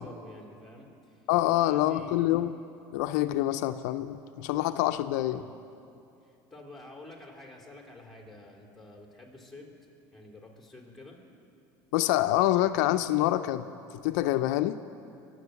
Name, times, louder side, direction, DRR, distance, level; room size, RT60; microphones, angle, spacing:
voice 1, 0.0-2.2 5.2-5.5 6.2-9.7 10.1-11.2, left 2 dB, ahead, 0 dB, 3.3 m, -49 dB
voice 2, 1.3-2.5 2.9-5.4 11.9-13.7 14.0-14.8, left 15 dB, 80° left, 10 dB, 0.5 m, -26 dB
22.5 x 7.8 x 8.2 m, 2.6 s
supercardioid pair, 95°, 9 cm